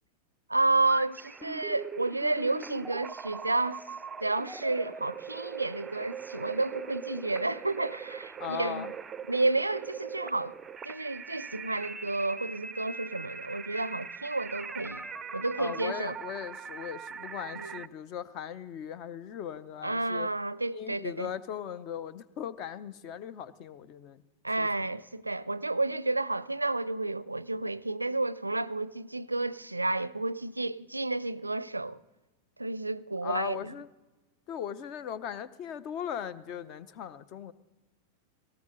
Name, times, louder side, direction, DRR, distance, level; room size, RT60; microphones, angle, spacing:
voice 1, 0.5-3.8 4.2-8.9 9.3-10.5 10.8-15.0 15.3-16.2 17.6-17.7 19.8-21.3 24.4-32.0 32.6-33.7, right 2 dB, 85° right, 0.4 m, -31 dB
sound 1, 0.9-17.9, right 6 dB, 15° right, 0.5 m, -41 dB
voice 2, 8.4-8.9 15.6-20.3 20.7-24.2 24.6-24.9 33.2-33.9 34.5-37.5, left 9 dB, 40° left, 0.7 m, -38 dB
18.5 x 18.0 x 3.9 m
figure-of-eight pair, 90°, 0 cm